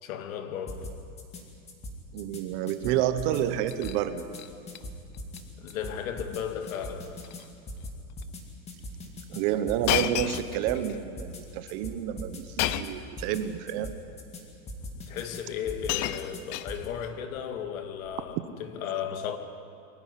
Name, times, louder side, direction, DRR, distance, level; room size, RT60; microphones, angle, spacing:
voice 1, 0.0-1.0 5.6-7.2 14.9-19.4, left 8 dB, 70° left, 2.2 m, -35 dB
sound 1, 0.7-1.4 1.7-2.4 2.7-3.4 3.7-4.4 4.7-5.4 5.7-6.4 6.7-7.4 7.7-8.4 8.7-9.4 9.7-10.4 10.7-10.9 11.2-11.4 11.7-12.4 12.7-12.9 13.2-13.4 13.7-14.4 14.7-15.4 15.7-16.4 16.7-16.9, left 1 dB, 15° left, 2.1 m, -40 dB
voice 2, 2.1-4.3 9.3-13.9, right 11 dB, 35° right, 0.9 m, -29 dB
Shatter, 3.6-4.0 4.3-4.8 5.1-5.4 5.7-5.8 6.6-6.9 7.2-7.5 8.2-8.3 9.9-11.0 12.6-13.1 14.1-14.2 15.2-15.3 15.6-17.1 18.0-18.3, left 13 dB, 35° left, 0.5 m, -32 dB
23.0 x 15.5 x 9.8 m
supercardioid pair, 170°, 43 cm